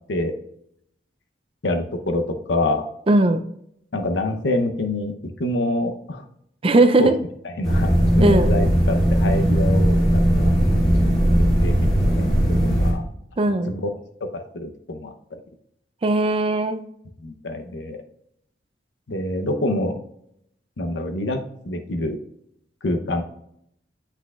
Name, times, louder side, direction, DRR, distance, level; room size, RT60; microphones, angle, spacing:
voice 1, 1.6-2.2 2.5-2.8 3.9-5.1 5.4-6.2 7.0-7.1 7.6-10.5 11.4-13.0 13.7-13.9 14.3-15.4 17.2-18.0 19.1-20.0 20.8-21.4 21.6-22.2 22.8-23.2, left 2 dB, 80° left, 6 dB, 0.8 m, -26 dB
voice 2, 3.1-3.4 6.6-7.1 8.2-8.5 13.4-13.7 16.0-16.8, right 2 dB, 30° right, 9 dB, 0.4 m, -18 dB
sound 1, 7.6-12.9, equal, 30° left, 2.5 m, -18 dB
8.2 x 5.9 x 2.4 m, 0.73 s
head